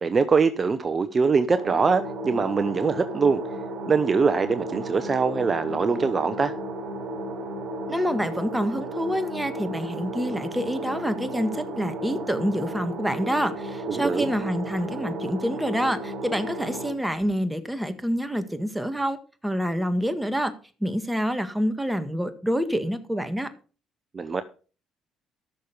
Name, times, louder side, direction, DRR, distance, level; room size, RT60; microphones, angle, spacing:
voice 1, 0.0-3.4 3.9-6.5 13.9-14.3 24.1-24.4, right 5 dB, 35° right, 11 dB, 0.9 m, -23 dB
sound 1, 1.5-16.9, right 1 dB, 55° right, 3.5 m, -34 dB
voice 2, 7.9-19.2 19.4-20.5 20.8-23.5, equal, 5° right, 10 dB, 1.7 m, -27 dB
13.5 x 6.6 x 5.2 m, 0.38 s
supercardioid pair, 65°, 0 cm